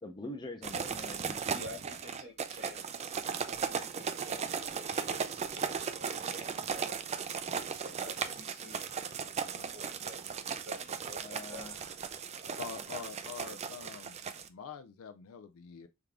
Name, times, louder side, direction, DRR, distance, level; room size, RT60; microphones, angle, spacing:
voice 1, 0.0-1.4 11.2-11.9, left 2 dB, 20° left, 0.6 m, -44 dB
sound 1, 0.6-14.5, right 6 dB, 30° right, 0.3 m, -37 dB
voice 2, 1.4-3.1 3.4-7.0 7.6-8.9 9.5-11.6 12.4-12.7, left 1 dB, 50° right, 1.2 m, -50 dB
voice 3, 12.6-14.2 14.5-15.9, left 7 dB, 80° left, 0.4 m, -45 dB
3.6 x 3.6 x 3.3 m
head